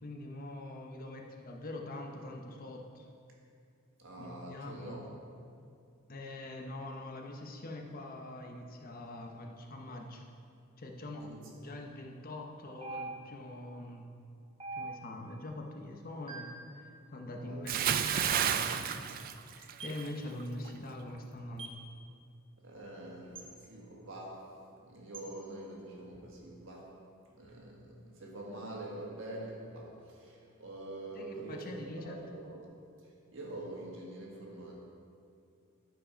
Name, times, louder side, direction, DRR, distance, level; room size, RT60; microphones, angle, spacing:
voice 1, 0.0-3.1 4.2-4.9 6.1-10.2 10.8-11.2 11.6-14.1 14.7-17.9 18.5-19.1 19.5-21.7 31.1-32.3, left 1 dB, 40° left, 2 dB, 0.8 m, -44 dB
voice 2, 4.0-5.2 11.2-11.8 17.3-17.7 22.6-26.9 27.3-32.6 33.0-34.7, right 1 dB, 60° right, -2 dB, 1.7 m, -45 dB
sound 1, 12.8-13.5 14.6-15.3 16.3-16.7 18.1-18.5 19.8-20.1 21.6-21.9 23.3-23.5 25.1-25.3, right 3 dB, 25° right, 0.9 m, -43 dB
Bathtub (filling or washing) / Splash splatter, 17.7-20.1 20.4-20.7, right 9 dB, 40° right, 0.3 m, -31 dB
12.0 x 5.0 x 5.0 m, 2.5 s
head